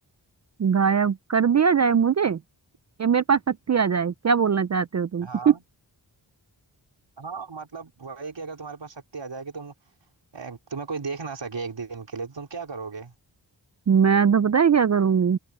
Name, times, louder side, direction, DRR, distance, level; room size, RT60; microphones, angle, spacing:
voice 1, 0.6-2.4 3.0-5.5 13.9-15.4, right 7 dB, 40° right, 0.4 m, -21 dB
voice 2, 5.2-5.6 7.2-9.7 10.3-13.1, right 4 dB, 70° right, 4.7 m, -35 dB
wide cardioid pair, 95°, 44 cm